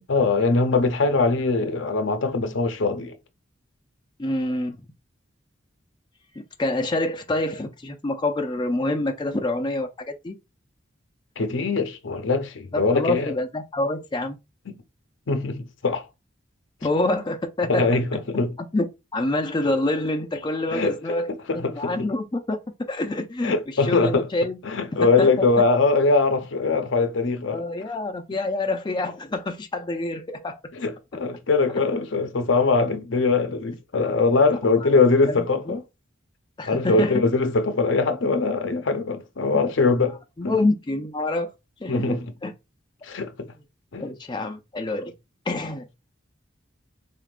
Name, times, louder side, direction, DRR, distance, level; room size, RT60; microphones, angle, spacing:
voice 1, 0.1-3.1 11.4-13.3 14.7-14.8 15.3-16.1 17.7-18.5 20.7-21.2 21.5-21.9 23.4-24.3 24.6-27.6 30.8-35.8 36.7-40.2 40.4-40.6 41.9-42.2 43.0-43.5 43.9-44.1, left 3 dB, 75° left, 0.7 m, -22 dB
voice 2, 4.2-4.8 6.3-9.9 10.2-10.4 12.7-14.4 16.8-18.0 18.7-18.9 19.1-21.3 21.5-22.6 22.9-24.6 25.0-25.3 27.5-30.6 34.8-34.9 35.3-35.8 36.6-37.1 40.4-41.5 41.8-42.2 42.4-42.5 44.0-45.1 45.5-45.9, left 2 dB, 25° left, 0.4 m, -26 dB
3.9 x 3.5 x 2.4 m
head